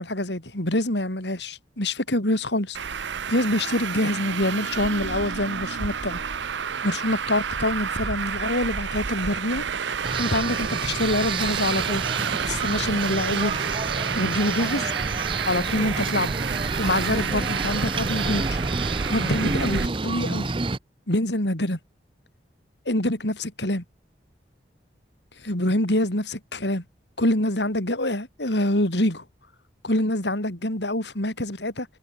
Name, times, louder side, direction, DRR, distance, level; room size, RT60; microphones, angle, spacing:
voice 1, 0.0-2.9 3.3-6.2 6.4-6.5 6.8-9.7 10.2-12.0 12.5-13.7 14.1-16.3 16.8-18.6 19.1-20.5 21.1-21.8 22.8-23.8 25.4-26.8 27.2-29.2 29.8-31.9, left 1 dB, 80° left, 4.8 m, -26 dB
Traffic noise roadway noise, 2.7-19.9, right 6 dB, 90° right, 0.8 m, -29 dB
sound 1, 10.0-20.8, right 3 dB, 30° right, 0.6 m, -29 dB
head